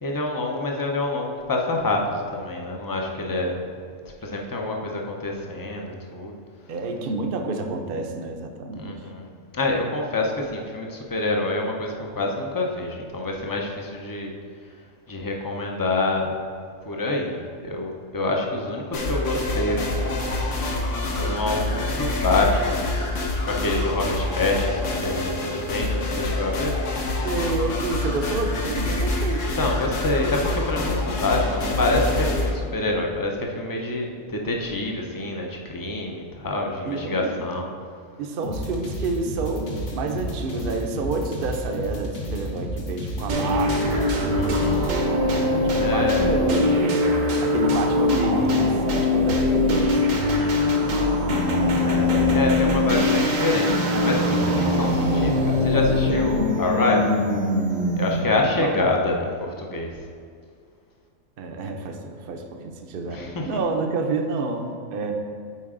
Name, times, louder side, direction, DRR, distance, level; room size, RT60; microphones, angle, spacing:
voice 1, 0.0-3.6 4.2-6.3 8.8-9.3 9.5-14.3 15.1-16.3 16.8-20.2 21.0-22.9 23.3-26.7 29.6-37.7 44.3-44.8 45.8-46.3 50.4-50.8 51.7-52.1 52.3-57.2 58.0-60.0 63.1-63.5, left 2 dB, 25° left, 1 dB, 0.4 m, -26 dB
voice 2, 6.7-9.0 27.2-30.0 36.8-37.4 38.2-47.0 47.4-50.2 58.6-58.7 61.4-65.1, right 3 dB, 55° right, 4 dB, 0.7 m, -29 dB
sound 1, 18.9-32.5, left 2 dB, 70° left, 1.2 m, -26 dB
sound 2, 38.4-44.9, equal, 55° left, 1.1 m, -32 dB
sound 3, 43.3-58.4, left 2 dB, 80° right, 1.3 m, -22 dB
8.4 x 4.8 x 3.7 m, 2.1 s
omnidirectional pair, 1.3 m